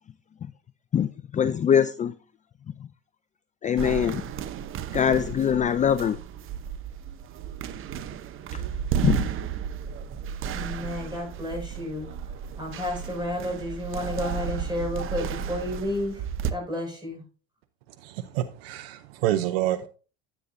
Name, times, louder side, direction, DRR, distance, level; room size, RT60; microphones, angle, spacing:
voice 1, 0.9-2.1 3.6-4.2 4.9-6.2 8.5-8.6 9.0-9.3, left 8 dB, 25° left, 0.4 m, -23 dB
sound 1, 3.8-16.5, right 8 dB, 45° right, 0.8 m, -33 dB
voice 2, 10.5-12.1 12.6-16.2 16.5-17.2, left 1 dB, 15° right, 5.6 m, -31 dB
voice 3, 18.0-19.9, right 13 dB, 85° right, 0.7 m, -28 dB
9.8 x 9.4 x 2.6 m
supercardioid pair, 95°, 30 cm